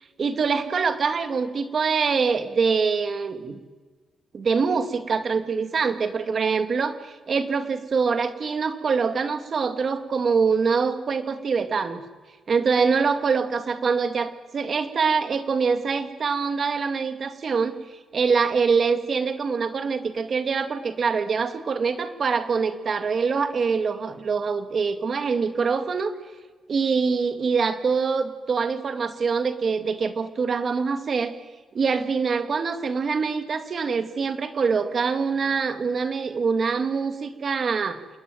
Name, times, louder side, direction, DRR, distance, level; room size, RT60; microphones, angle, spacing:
voice 1, 0.2-3.6 4.3-12.0 12.5-17.7 18.1-26.1 26.7-31.3 31.7-38.0, right 5 dB, 45° right, 8 dB, 2.2 m, -24 dB
28.0 x 20.0 x 9.3 m, 1.3 s
cardioid pair, 135°, 0 cm